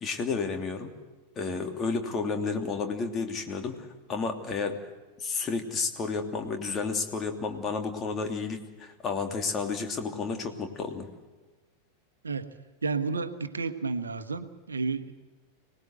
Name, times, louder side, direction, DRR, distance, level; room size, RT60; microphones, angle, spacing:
voice 1, 0.0-0.9 1.4-4.9 5.2-11.1, left 4 dB, 25° left, 5 dB, 2.9 m, -31 dB
voice 2, 12.2-15.1, right 4 dB, 75° right, 10 dB, 1.3 m, -32 dB
25.0 x 19.0 x 8.0 m, 1.3 s
figure-of-eight pair, 90°, 0 cm